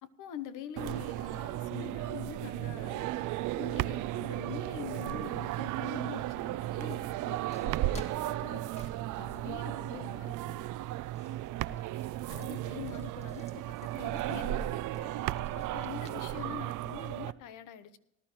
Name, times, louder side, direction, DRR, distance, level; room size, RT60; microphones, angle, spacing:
voice 1, 0.0-3.1 3.6-10.7 12.3-15.1 15.5-18.0, left 9 dB, 90° left, 0.9 m, -45 dB
sound 1, 0.8-17.3, right 15 dB, 85° right, 0.5 m, -35 dB
sound 2, 6.8-16.3, left 1 dB, 20° left, 1.8 m, -57 dB
19.0 x 11.5 x 3.0 m
cardioid pair, 90°, 30 cm